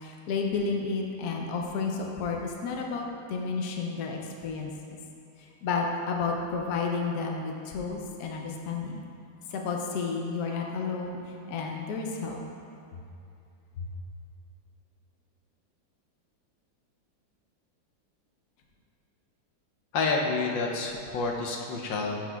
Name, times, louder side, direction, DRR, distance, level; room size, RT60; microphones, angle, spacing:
voice 1, 0.0-4.7 5.4-9.0 9.5-12.4, left 4 dB, 65° left, 1 dB, 1.1 m, -31 dB
voice 2, 19.9-22.2, left 3 dB, 80° left, 0 dB, 1.4 m, -29 dB
12.0 x 6.1 x 2.3 m, 2.6 s
omnidirectional pair, 2.0 m